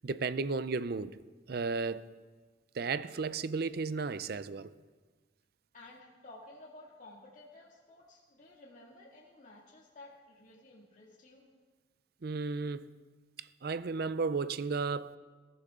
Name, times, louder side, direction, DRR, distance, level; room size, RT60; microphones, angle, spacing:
voice 1, 0.0-1.2 1.5-2.1 2.7-4.7 12.2-12.9 13.4-15.2, right 4 dB, 55° right, 0.5 m, -34 dB
voice 2, 5.7-11.4, left 2 dB, 45° left, 2.2 m, -54 dB
21.5 x 13.5 x 3.7 m
head